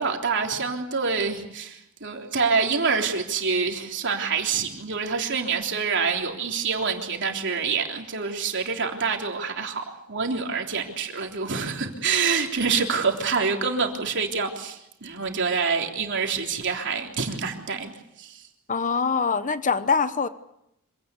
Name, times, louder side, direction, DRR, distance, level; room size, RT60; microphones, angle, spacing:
voice 1, 0.0-17.9 18.2-18.4, right 5 dB, 60° right, 3.5 m, -26 dB
voice 2, 18.7-20.3, left 5 dB, 35° left, 0.9 m, -23 dB
26.5 x 18.0 x 8.3 m
head